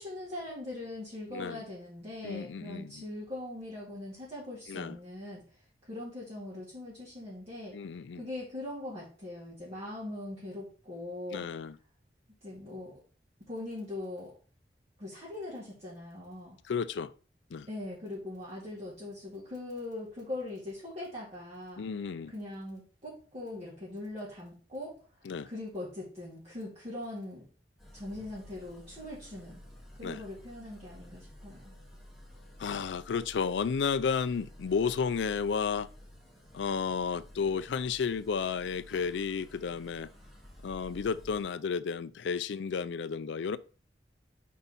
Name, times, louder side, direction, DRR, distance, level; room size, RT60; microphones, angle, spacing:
voice 1, 0.0-5.4 5.8-7.7 8.1-11.4 12.4-12.9 13.5-14.3 15.0-16.6 17.7-21.8 22.3-24.9 25.5-27.4 27.9-29.6 30.0-31.7, left 1 dB, 35° right, 2.0 m, -41 dB
voice 2, 1.3-1.6 2.2-3.0 4.7-5.0 7.7-8.3 11.3-11.8 16.7-17.1 17.5-17.7 21.8-22.3 25.2-25.5 30.0-30.2 32.6-35.9 36.5-40.1 40.6-43.6, left 6 dB, 80° left, 0.4 m, -32 dB
sound 1, 27.8-41.4, left 1 dB, ahead, 1.5 m, -52 dB
4.7 x 4.1 x 5.6 m
head